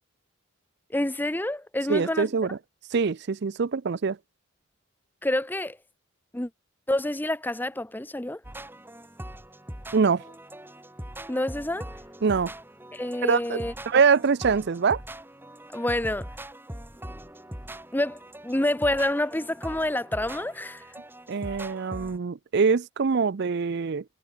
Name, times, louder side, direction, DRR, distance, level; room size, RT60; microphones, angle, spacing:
voice 1, 0.9-2.3 5.2-5.8 6.3-6.5 6.9-8.4 11.3-11.9 12.9-13.7 15.7-16.3 17.9-20.9, left 1 dB, 10° left, 0.7 m, -28 dB
voice 2, 1.9-2.6 2.9-4.2 9.9-10.2 12.2-12.5 13.2-15.0 21.3-24.0, right 5 dB, 50° right, 0.5 m, -24 dB
sound 1, 8.4-22.2, right 1 dB, 10° right, 4.5 m, -42 dB
head